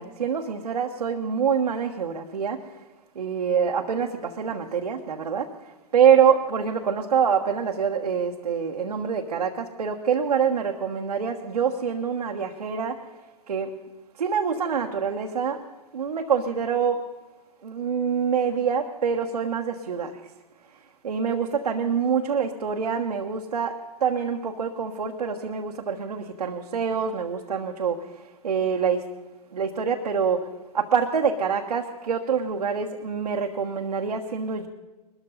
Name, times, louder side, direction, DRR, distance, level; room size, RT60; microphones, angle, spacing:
voice 1, 0.0-2.6 3.1-5.5 5.9-13.0 13.5-13.7 14.2-15.7 15.9-17.0 17.6-20.2 21.0-29.1 29.5-34.7, right 7 dB, 90° right, 1 dB, 1.3 m, -25 dB
21.5 x 13.5 x 4.0 m, 1.2 s
hypercardioid pair, 125°, 20 cm